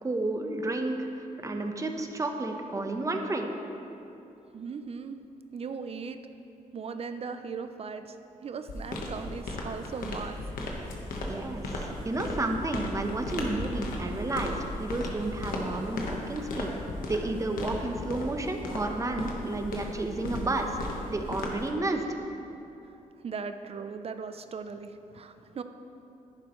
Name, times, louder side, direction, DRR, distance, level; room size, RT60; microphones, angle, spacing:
voice 1, 0.0-3.5 11.3-16.7 17.1-22.1, right 2 dB, 20° right, 4 dB, 0.9 m, -31 dB
voice 2, 4.5-5.2 5.5-6.2 6.7-8.2 8.4-10.4 23.2-25.6, right 5 dB, 45° right, 9 dB, 0.5 m, -38 dB
sound 1, 8.7-21.7, left 2 dB, 85° left, 1.3 m, -36 dB
10.5 x 10.5 x 3.1 m, 2.9 s
cardioid pair, 95°, 14 cm